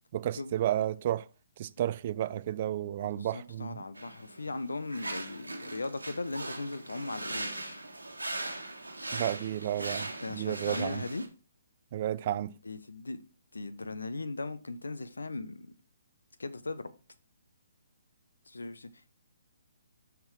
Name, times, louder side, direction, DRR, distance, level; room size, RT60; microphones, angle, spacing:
voice 1, 0.1-1.3 1.6-3.8 9.1-11.1 11.9-12.5, right 12 dB, 40° right, 0.3 m, -32 dB
voice 2, 3.1-7.8 10.2-11.2 12.6-13.2 13.5-15.7 16.4-16.9 18.5-19.1, left 3 dB, 75° left, 0.7 m, -38 dB
sound 1, 4.0-11.3, right 2 dB, 85° right, 1.3 m, -40 dB
7.1 x 5.9 x 3.1 m
figure-of-eight pair, 135°, 0 cm